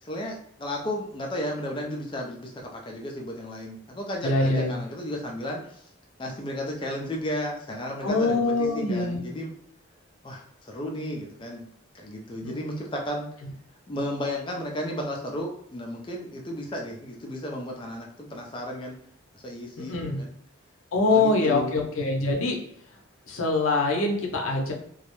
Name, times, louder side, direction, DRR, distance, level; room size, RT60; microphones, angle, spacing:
voice 1, 0.0-5.8 6.2-9.6 10.2-11.7 11.9-13.3 13.9-18.9 19.3-20.3 21.0-21.8, equal, 25° left, 0 dB, 0.4 m, -34 dB
voice 2, 4.2-4.8 8.0-9.3 12.4-12.5 13.4-13.5 19.8-20.2 20.9-22.6 23.3-24.7, left 3 dB, 80° left, 1 dB, 0.6 m, -24 dB
2.3 x 2.0 x 2.9 m, 0.68 s
head